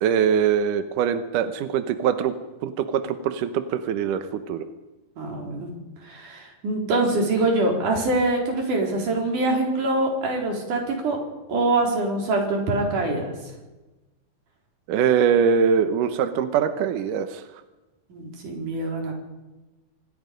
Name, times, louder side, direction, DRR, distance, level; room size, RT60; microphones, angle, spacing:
voice 1, 0.0-2.3 2.6-4.7 14.9-17.4, right 7 dB, 75° right, 9 dB, 1.9 m, -22 dB
voice 2, 5.2-5.7 6.0-11.2 11.5-13.3 18.1-19.1, right 2 dB, 45° right, 1 dB, 5.1 m, -24 dB
26.0 x 19.5 x 5.2 m, 1.1 s
omnidirectional pair, 5.1 m